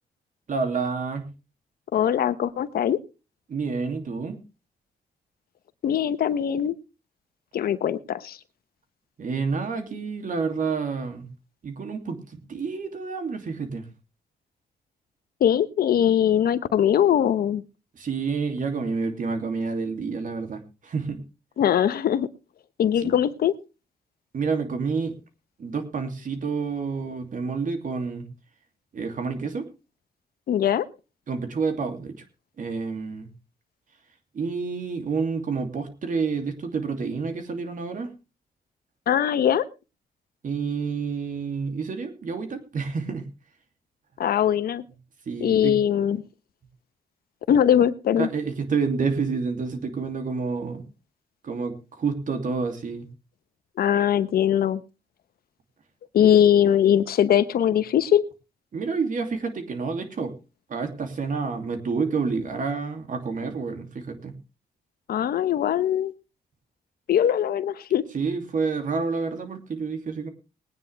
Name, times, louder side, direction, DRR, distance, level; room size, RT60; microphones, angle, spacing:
voice 1, 0.5-1.3 3.5-4.4 9.2-11.3 11.6-13.9 18.0-21.2 23.0-23.1 24.3-25.1 25.6-28.3 28.9-29.7 31.3-32.2 32.6-33.3 34.3-38.1 40.4-43.3 45.3-45.8 48.2-50.8 51.4-53.1 58.7-60.3 60.7-64.4 68.1-70.3, right 5 dB, 60° right, 6 dB, 2.8 m, -29 dB
voice 2, 1.9-3.0 5.8-6.7 7.5-8.4 15.4-17.6 21.6-22.3 22.8-23.5 30.5-30.9 39.1-39.7 44.2-44.8 45.4-46.2 47.5-48.3 53.8-54.8 56.1-58.2 65.1-66.1 67.1-68.0, left 9 dB, 80° left, 12 dB, 1.0 m, -21 dB
20.5 x 9.4 x 3.4 m, 0.30 s
cardioid pair, 80°, 16 cm